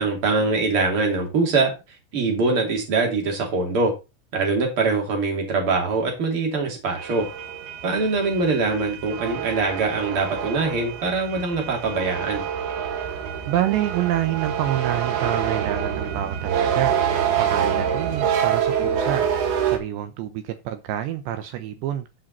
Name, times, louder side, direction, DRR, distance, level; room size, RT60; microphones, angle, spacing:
voice 1, 0.0-1.7 2.1-3.9 4.3-7.2 7.8-12.4, right 3 dB, 35° right, 2.7 m, -23 dB
sound 1, 7.0-19.8, right 8 dB, 60° right, 3.1 m, -26 dB
voice 2, 13.5-19.3 19.6-22.1, right 12 dB, 80° right, 2.5 m, -27 dB
13.5 x 5.3 x 4.1 m
omnidirectional pair, 5.8 m